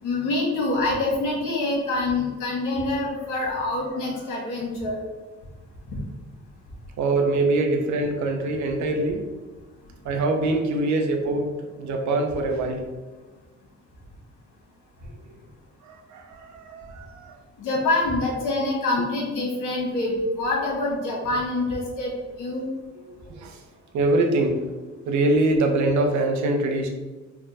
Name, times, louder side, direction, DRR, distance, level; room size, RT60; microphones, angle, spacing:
voice 1, 0.0-5.0 17.6-22.7, left 2 dB, 85° left, -3 dB, 1.3 m, -26 dB
voice 2, 7.0-9.2 10.0-12.9 15.8-17.4 23.1-23.6 23.9-24.7 25.1-26.9, right 2 dB, 70° right, 3 dB, 0.7 m, -24 dB
3.5 x 2.2 x 4.0 m, 1.3 s
cardioid pair, 90°, 30 cm